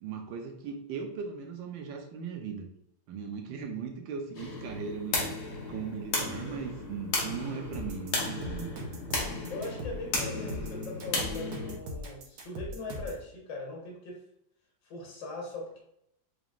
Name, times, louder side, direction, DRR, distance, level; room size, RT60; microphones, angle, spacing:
voice 1, 0.0-2.7 3.1-5.4 5.7-8.7, right 6 dB, 80° right, 3 dB, 1.4 m, -38 dB
sound 1, 4.3-11.8, left 2 dB, 60° left, 1.5 m, -35 dB
voice 2, 6.2-6.6 9.5-14.2 14.8-15.8, left 2 dB, 75° left, -1 dB, 1.9 m, -40 dB
sound 2, 7.7-13.2, equal, 60° right, 1.2 m, -40 dB
4.9 x 3.4 x 2.4 m, 0.75 s
omnidirectional pair, 2.1 m